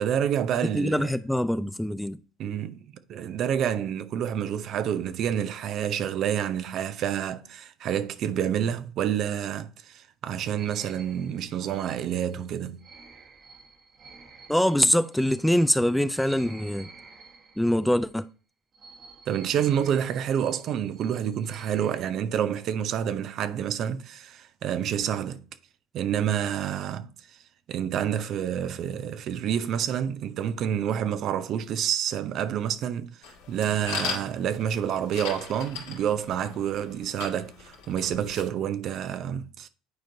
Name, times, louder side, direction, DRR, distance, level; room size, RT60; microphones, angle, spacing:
voice 1, 0.0-1.1 2.4-12.8 19.3-25.4 25.9-27.1 27.7-39.7, right 9 dB, 55° right, 0.6 m, -28 dB
voice 2, 0.6-2.2 14.5-16.9 17.6-18.3, equal, 5° left, 0.4 m, -24 dB
sound 1, 10.6-18.1 18.7-22.0, right 4 dB, 35° right, 1.3 m, -51 dB
sound 2, 33.2-38.4, left 6 dB, 80° left, 2.1 m, -38 dB
9.5 x 4.4 x 2.7 m
hypercardioid pair, 80°, 0 cm